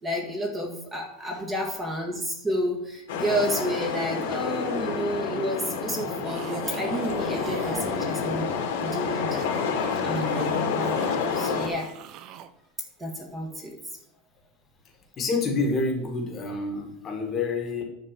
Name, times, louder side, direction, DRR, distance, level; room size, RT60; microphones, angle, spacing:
voice 1, 0.0-8.5 8.8-9.3 10.0-11.9 13.0-13.7, equal, 15° right, 0 dB, 1.6 m, -30 dB
sound 1, 3.1-11.7, left 5 dB, 80° left, 2.5 m, -28 dB
sound 2, 6.2-8.1 8.8-12.5, right 9 dB, 35° right, 0.6 m, -41 dB
voice 2, 15.2-17.8, left 3 dB, 25° left, 2 dB, 1.7 m, -28 dB
10.5 x 4.4 x 7.4 m, 0.80 s
supercardioid pair, 170°, 0 cm